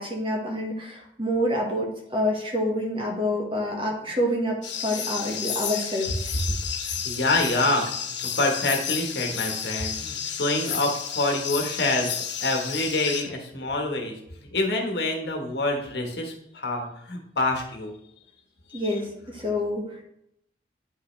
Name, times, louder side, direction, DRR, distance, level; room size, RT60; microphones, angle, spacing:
voice 1, 0.0-4.6 4.8-6.3 18.7-20.0, left 1 dB, 30° right, 0 dB, 1.6 m, -27 dB
sound 1, 4.6-13.2, left 8 dB, 90° left, 1.1 m, -31 dB
voice 2, 6.8-12.1 12.4-14.2 14.5-17.9 18.7-18.8, left 2 dB, 70° left, 2 dB, 1.5 m, -26 dB
9.3 x 5.6 x 3.3 m, 0.75 s
head